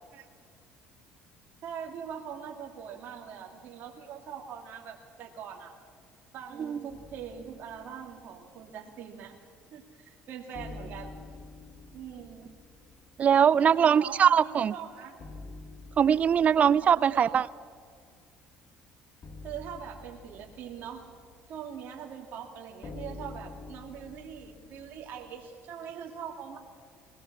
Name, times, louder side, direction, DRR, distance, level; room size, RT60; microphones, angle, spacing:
voice 1, 1.6-5.7 6.3-9.4 9.7-11.1 11.9-12.5 13.6-15.2 16.8-17.5 19.4-21.1 21.5-26.6, right 8 dB, 55° right, 0 dB, 2.2 m, -42 dB
sound 1, 6.9-9.7 10.0-10.1 10.5-25.3, left 3 dB, 45° left, 2.8 m, -49 dB
voice 2, 13.2-14.7 16.0-17.5, right 8 dB, 40° right, 20 dB, 0.5 m, -22 dB
21.5 x 18.0 x 7.3 m, 2.1 s
cardioid pair, 105°, 4 cm